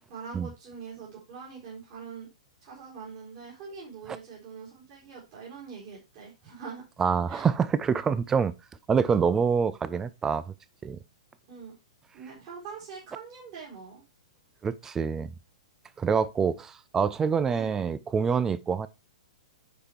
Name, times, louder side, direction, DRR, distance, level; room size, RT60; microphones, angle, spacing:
voice 1, 0.1-2.3 2.6-6.8 7.3-7.5 11.5-11.8 12.1-14.0 17.5-17.7, right 5 dB, 40° right, 4.1 m, -43 dB
voice 2, 7.0-8.5 8.9-10.5 10.8-11.0 14.6-15.3 16.0-18.9, right 6 dB, 15° right, 0.5 m, -26 dB
9.7 x 5.1 x 4.4 m
figure-of-eight pair, 110°, 3 cm